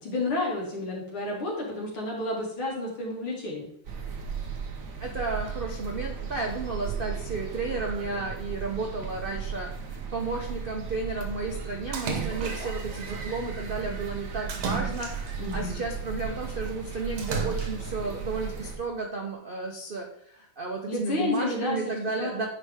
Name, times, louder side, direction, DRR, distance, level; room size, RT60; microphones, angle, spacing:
voice 1, 0.0-3.7 15.4-15.8 20.9-21.8 22.2-22.5, left 2 dB, 90° left, -3 dB, 3.2 m, -30 dB
sound 1, 3.8-18.8, right 6 dB, 50° right, 1.2 m, -36 dB
voice 2, 5.0-22.5, right 3 dB, 70° right, 1 dB, 0.5 m, -33 dB
Splash splatter, 11.9-12.9 14.5-15.6 17.2-18.0, right 5 dB, 90° right, 2.0 m, -33 dB
9.6 x 4.9 x 3.5 m, 0.74 s
omnidirectional pair, 2.2 m